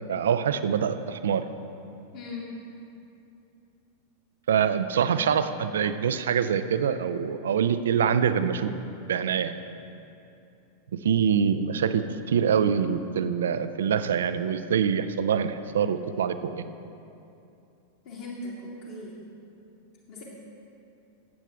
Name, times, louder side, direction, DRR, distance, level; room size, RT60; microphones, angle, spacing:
voice 1, 0.1-1.5 4.5-8.7 9.1-9.6 10.9-16.6, right 7 dB, 65° right, 11 dB, 0.5 m, -25 dB
voice 2, 2.1-2.6 18.0-19.2 20.1-20.2, left 2 dB, 55° left, -7 dB, 1.9 m, -38 dB
17.0 x 8.3 x 3.5 m, 2.7 s
figure-of-eight pair, 90°, 0 cm